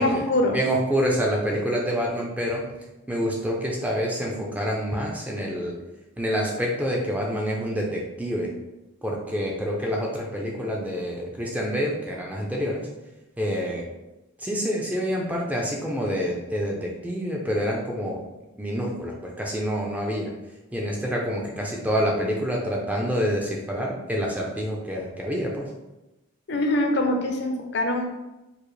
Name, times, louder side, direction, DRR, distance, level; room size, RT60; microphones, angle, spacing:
voice 1, 0.0-0.6 26.5-28.1, left 1 dB, 55° left, 2 dB, 0.5 m, -23 dB
voice 2, 0.5-2.6 3.1-5.8 6.2-8.5 9.0-12.9 13.4-13.8 14.4-18.2 18.6-20.3 20.7-25.7, equal, 5° right, -2 dB, 0.4 m, -27 dB
4.7 x 2.0 x 3.1 m, 1.0 s
head